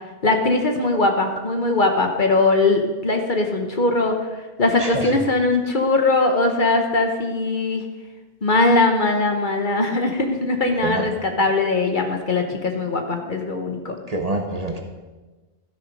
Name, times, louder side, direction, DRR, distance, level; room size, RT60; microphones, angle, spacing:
voice 1, 0.2-4.1 4.6-7.8 8.4-14.0, left 2 dB, 45° left, 4 dB, 1.1 m, -20 dB
voice 2, 4.8-5.1 10.8-11.1 14.1-14.8, right 2 dB, 35° right, 3 dB, 1.0 m, -26 dB
13.5 x 6.4 x 5.2 m, 1.2 s
omnidirectional pair, 1.2 m